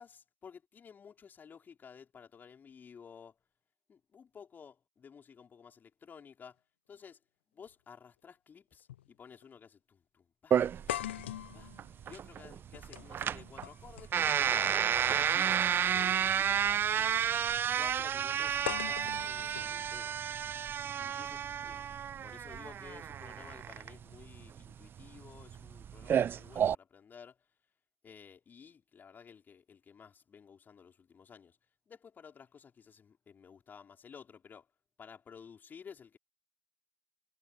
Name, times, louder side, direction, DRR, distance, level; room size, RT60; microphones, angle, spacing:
voice 1, 0.0-3.3 3.9-6.6 6.9-7.2 7.5-11.7 12.0-15.0 15.3-17.3 17.7-20.2 21.0-21.8 22.2-27.4 28.0-31.6 31.9-34.7 35.0-36.2, left 6 dB, 30° left, 5.9 m, -54 dB
sound 1, 7.7-7.8 8.9-9.1 9.4-9.5 10.9-14.9 16.1-16.3 18.7-20.7, left 13 dB, 85° left, 1.9 m, -42 dB
sound 2, 10.5-26.7, right 9 dB, 35° right, 1.2 m, -31 dB
hypercardioid pair, 90°, 6 cm